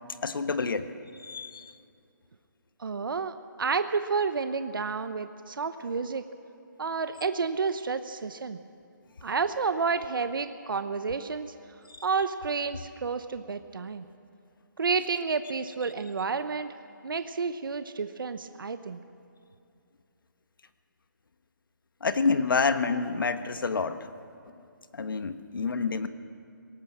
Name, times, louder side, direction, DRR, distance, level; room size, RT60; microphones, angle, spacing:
voice 1, 0.2-0.9 1.2-1.6 11.9-12.0 22.0-24.1 24.9-26.1, left 4 dB, 85° left, 10 dB, 1.3 m, -28 dB
voice 2, 2.8-6.2 6.8-8.6 9.2-11.5 12.0-14.0 14.8-16.7 17.0-19.0, right 5 dB, 85° right, 10 dB, 0.9 m, -30 dB
19.5 x 17.5 x 7.5 m, 2.5 s
hypercardioid pair, 175°, 11 cm